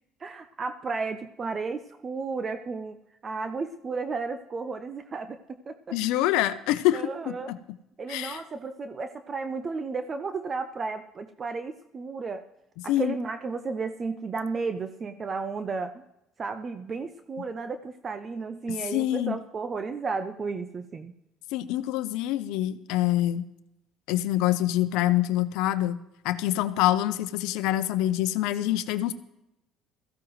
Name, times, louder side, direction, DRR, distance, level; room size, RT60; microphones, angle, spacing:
voice 1, 0.2-6.0 6.9-7.5 8.0-12.4 12.8-16.0 16.4-21.1, right 4 dB, 35° right, 10 dB, 0.6 m, -33 dB
voice 2, 5.9-7.6 8.1-8.4 12.9-13.1 18.9-19.4 21.5-23.4 24.1-29.1, left 14 dB, 85° left, 12 dB, 0.7 m, -26 dB
17.0 x 14.5 x 3.2 m, 0.87 s
cardioid pair, 105°, 0 cm